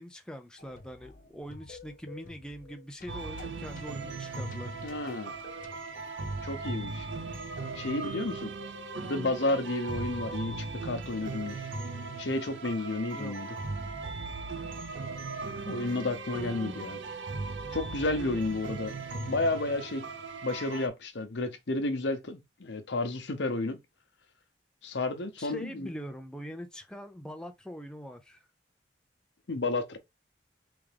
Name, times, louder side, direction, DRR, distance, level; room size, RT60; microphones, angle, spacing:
voice 1, 0.0-4.7 13.1-13.5 25.4-28.5, equal, 5° left, 0.4 m, -43 dB
sound 1, 0.6-5.8, left 3 dB, 45° left, 0.8 m, -51 dB
sound 2, 3.1-20.9, right 3 dB, 90° right, 0.7 m, -38 dB
voice 2, 4.8-5.3 6.4-7.1 7.7-8.5 9.0-11.7 12.2-13.5 15.7-17.0 17.7-18.9 19.3-20.1 20.4-23.8 24.8-25.9 29.5-30.0, left 2 dB, 75° left, 0.8 m, -31 dB
3.5 x 3.4 x 3.3 m
head